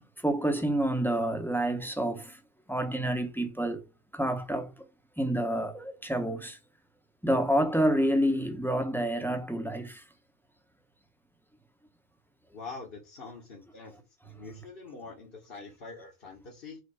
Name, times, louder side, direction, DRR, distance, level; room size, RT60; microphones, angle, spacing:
voice 1, 0.0-2.3 2.7-3.8 4.1-4.7 5.2-6.6 7.2-10.0, right 1 dB, ahead, 0.8 m, -28 dB
voice 2, 12.5-14.0 14.2-16.8, left 4 dB, 55° left, 1.4 m, -44 dB
4.9 x 4.0 x 4.8 m
omnidirectional pair, 1.2 m